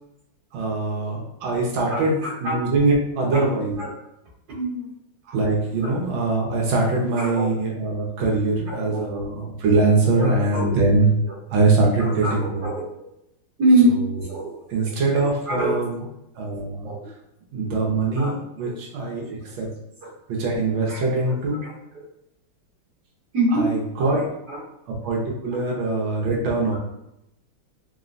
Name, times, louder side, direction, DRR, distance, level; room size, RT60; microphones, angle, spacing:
voice 1, 0.5-3.8 5.3-11.1 11.5-12.7 14.3-16.0 16.4-16.9 17.5-19.7 20.3-21.6 23.5-24.2 24.9-26.8, right 3 dB, 75° right, -2 dB, 1.4 m, -23 dB
voice 2, 1.9-2.6 3.2-3.4 3.8-3.9 4.5-4.9 5.8-5.9 7.2-7.5 8.7-9.0 10.1-10.8 11.2-11.3 12.0-12.3 12.6-12.9 13.6-13.9 14.3-14.8 15.1-15.8 16.8-17.0 18.2-18.3 18.6-18.8 20.0-20.1 20.9-21.4 21.6-22.0 23.3-23.7 24.0-24.6 25.5-25.6, right 1 dB, 55° right, -8 dB, 1.4 m, -25 dB
3.8 x 2.1 x 2.5 m, 0.84 s
omnidirectional pair, 2.3 m